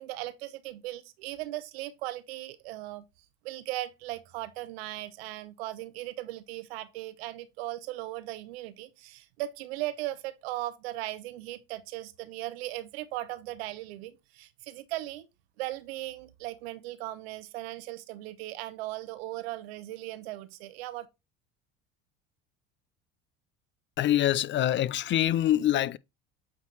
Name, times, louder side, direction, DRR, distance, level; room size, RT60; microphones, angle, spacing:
voice 1, 0.0-3.0 3.4-15.3 15.6-21.1, right 16 dB, 80° right, 0.9 m, -38 dB
voice 2, 24.0-26.0, left 12 dB, 40° left, 0.5 m, -25 dB
8.1 x 4.5 x 3.3 m
supercardioid pair, 85°, 31 cm